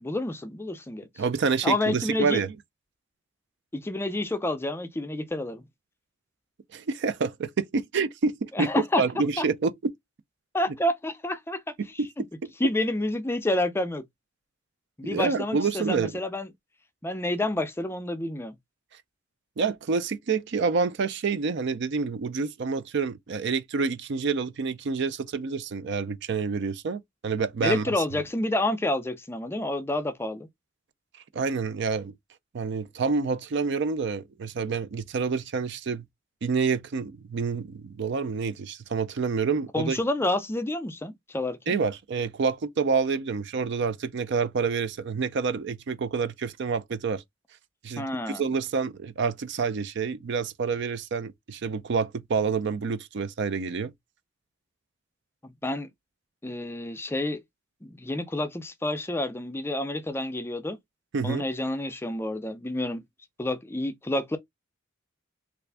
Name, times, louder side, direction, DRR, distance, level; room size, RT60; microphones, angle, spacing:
voice 1, 0.0-1.1 1.6-2.4 3.7-5.6 8.5-9.0 9.4-9.5 10.5-11.6 12.6-14.0 15.0-16.5 17.0-18.6 27.6-30.5 39.7-41.7 48.0-48.4 55.4-55.9 56.4-57.4 57.8-60.8 61.2-63.0 63.4-64.4, left 1 dB, 10° left, 0.4 m, -29 dB
voice 2, 1.2-2.5 6.7-8.7 9.0-9.9 11.8-12.1 12.4-12.5 15.0-16.1 19.6-27.8 31.3-32.1 32.5-36.1 36.4-40.0 41.7-47.2 47.8-48.1 48.3-53.9 61.1-61.4, right 5 dB, 60° right, 0.4 m, -28 dB
3.3 x 2.5 x 3.3 m
head